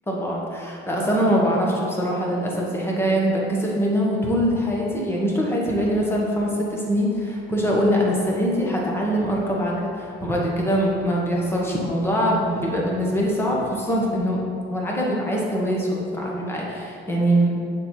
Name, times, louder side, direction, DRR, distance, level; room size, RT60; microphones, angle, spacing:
voice 1, 0.1-14.4 14.7-17.5, equal, 10° left, -3 dB, 1.3 m, -23 dB
7.0 x 4.3 x 4.6 m, 2.5 s
cardioid pair, 130°, 20 cm